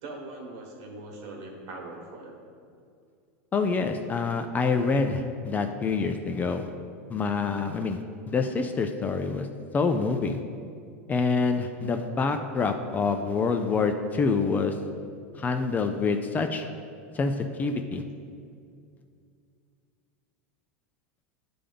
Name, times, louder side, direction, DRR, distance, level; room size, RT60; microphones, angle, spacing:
voice 1, 0.0-2.4, right 2 dB, 60° right, 0 dB, 1.4 m, -41 dB
voice 2, 3.5-6.7 7.1-8.0 8.3-9.5 9.7-10.4 11.1-14.8 15.4-16.7 17.1-18.0, left 4 dB, 20° left, 6 dB, 0.4 m, -26 dB
9.8 x 3.4 x 3.8 m, 2.3 s
supercardioid pair, 115°, 7 cm